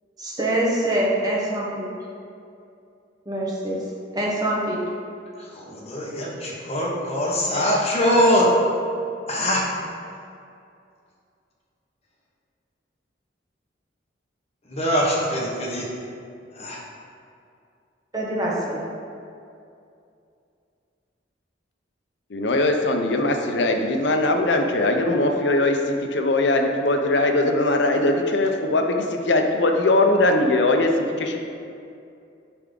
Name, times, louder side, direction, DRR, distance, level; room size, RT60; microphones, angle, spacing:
voice 1, 0.2-1.9 3.3-3.8 4.1-4.8 18.1-18.8, right 1 dB, 20° right, -5 dB, 1.1 m, -24 dB
voice 2, 5.4-8.5 9.3-9.6 14.7-15.9 16.6-16.8, equal, 35° left, -4 dB, 1.1 m, -22 dB
voice 3, 22.3-31.5, left 2 dB, 65° left, 4 dB, 0.6 m, -21 dB
9.3 x 3.5 x 3.8 m, 2.5 s
head